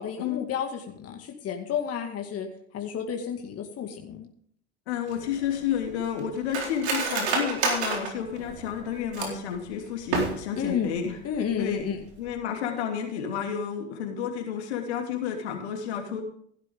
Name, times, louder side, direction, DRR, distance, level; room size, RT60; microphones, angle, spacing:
voice 1, 0.0-2.5 2.7-4.3 10.6-10.9 11.2-12.0, left 8 dB, 45° left, 3 dB, 2.2 m, -31 dB
voice 2, 4.9-11.2 11.6-11.9 12.2-16.2, left 8 dB, 75° left, 3 dB, 3.0 m, -31 dB
Cutlery silverware, 5.1-9.5 10.0-10.7 11.0-11.1 11.4-11.8 12.1-12.3, right 4 dB, 75° right, 4.1 m, -30 dB
16.0 x 12.0 x 3.7 m, 0.63 s
hypercardioid pair, 70°, 33 cm